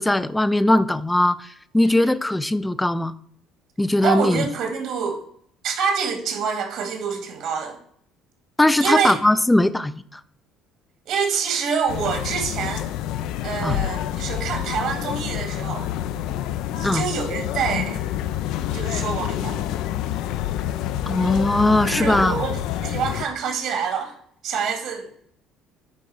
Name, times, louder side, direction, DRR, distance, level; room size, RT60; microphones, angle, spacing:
voice 1, 0.0-1.5 1.7-3.1 3.8-4.5 8.6-10.0 13.6-13.8 16.8-17.1 21.1-22.4, left 1 dB, 5° left, 14 dB, 0.4 m, -20 dB
voice 2, 4.0-5.2 5.6-7.8 8.8-9.1 11.1-12.9 13.4-15.9 16.7-18.0 18.7-19.6 21.9-22.5 22.8-24.2 24.4-25.2, right 6 dB, 65° right, 5 dB, 2.0 m, -26 dB
sound 1, 11.9-23.3, left 12 dB, 75° left, 0.5 m, -27 dB
9.7 x 3.9 x 4.8 m, 0.64 s
cardioid pair, 130°, 0 cm